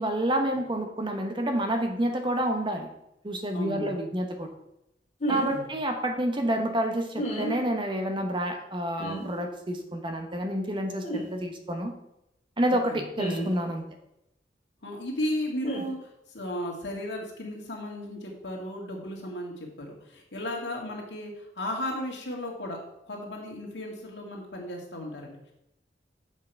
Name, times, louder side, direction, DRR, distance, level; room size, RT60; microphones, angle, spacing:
voice 1, 0.0-2.9 3.2-4.5 5.3-11.0 11.3-11.9 12.6-13.8, right 1 dB, 30° right, 5 dB, 0.9 m, -28 dB
voice 2, 3.5-3.9 5.3-5.7 12.6-13.0 14.8-16.0 16.3-22.8 23.0-25.5, left 1 dB, 80° left, -1 dB, 2.0 m, -35 dB
sound 1, 5.2-5.5 7.1-7.5 9.0-9.2 11.0-11.3 13.2-13.5 15.6-15.8, right 1 dB, 40° left, 1.8 m, -31 dB
7.3 x 5.6 x 4.6 m, 0.83 s
head